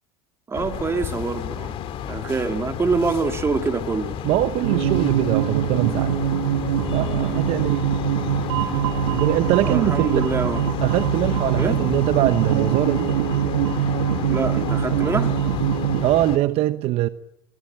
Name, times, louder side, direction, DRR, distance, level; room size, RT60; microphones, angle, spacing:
sound 1, 0.5-16.4, left 10 dB, 50° left, 2.8 m, -32 dB
voice 1, 0.5-1.7 2.1-4.2 9.6-10.6 11.6-11.8 14.3-15.3, right 4 dB, 20° right, 2.9 m, -25 dB
voice 2, 4.2-6.2 6.9-7.9 9.1-10.3 10.8-13.1 16.0-17.1, right 15 dB, 55° right, 1.0 m, -22 dB
sound 2, 4.6-16.0, right 8 dB, 85° right, 2.4 m, -23 dB
sound 3, 5.8-15.5, left 1 dB, 10° left, 6.6 m, -37 dB
24.0 x 22.0 x 8.9 m
supercardioid pair, 110°, 12 cm